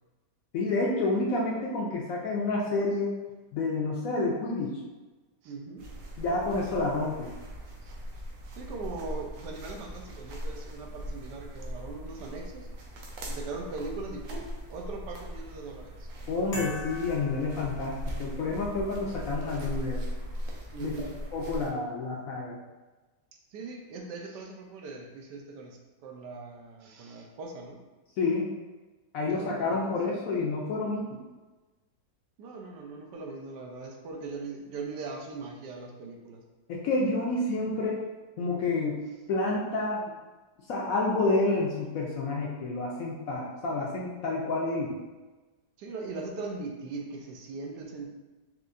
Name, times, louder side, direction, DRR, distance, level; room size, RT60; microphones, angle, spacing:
voice 1, 0.5-3.2 3.5-4.8 6.2-7.3 16.3-20.0 20.8-21.1 21.3-22.6 28.2-28.5 29.1-31.2 36.7-38.0 38.4-39.0 39.3-40.1 40.7-45.0, left 3 dB, 70° left, -3 dB, 0.8 m, -29 dB
voice 2, 5.4-5.9 7.8-8.0 8.6-12.7 13.3-16.1 20.7-21.2 23.5-27.8 29.3-29.8 32.4-36.4 45.8-48.1, right 3 dB, 85° right, 1 dB, 1.2 m, -40 dB
sound 1, 5.8-21.7, equal, 65° right, 1.0 m, -39 dB
sound 2, 16.5-18.4, equal, 40° left, 0.6 m, -41 dB
4.4 x 2.4 x 2.5 m, 1.2 s
omnidirectional pair, 1.8 m